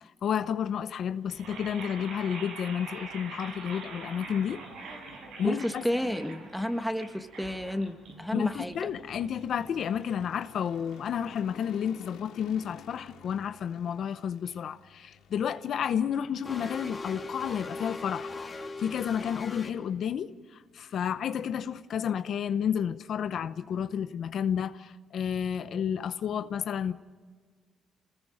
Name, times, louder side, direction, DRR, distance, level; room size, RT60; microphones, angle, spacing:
voice 1, 0.0-4.6 5.4-5.8 8.3-26.9, left 8 dB, 65° left, 0.8 m, -31 dB
sound 1, 1.2-11.3, right 3 dB, 85° right, 6.4 m, -45 dB
sound 2, 3.0-21.8, left 8 dB, 90° left, 2.0 m, -56 dB
voice 2, 5.4-8.8, equal, ahead, 1.4 m, -31 dB
sound 3, 16.4-19.7, left 3 dB, 30° left, 3.0 m, -39 dB
27.5 x 19.5 x 5.0 m
cardioid pair, 90°, 0 cm